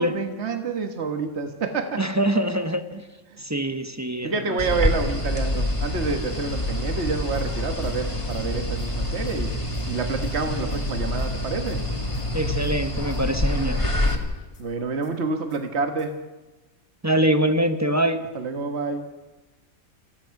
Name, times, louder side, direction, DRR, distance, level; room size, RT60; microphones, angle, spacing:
voice 1, 0.0-2.0 3.3-3.4 4.2-9.5 9.9-11.8 14.6-16.1 18.3-19.0, right 4 dB, 50° right, 5 dB, 1.7 m, -28 dB
voice 2, 2.0-3.0 3.4-4.8 12.3-13.8 17.0-18.3, right 1 dB, 15° right, 8 dB, 0.9 m, -24 dB
sound 1, 4.6-14.2, left 1 dB, 20° left, 2.0 m, -26 dB
sound 2, 7.1-9.4 9.7-9.8 10.2-11.3 11.7-11.8 12.1-12.2 12.5-13.2 13.6-13.7 14.1-16.0, left 1 dB, 80° left, 2.1 m, -41 dB
27.5 x 16.0 x 5.9 m, 1.2 s
omnidirectional pair, 1.5 m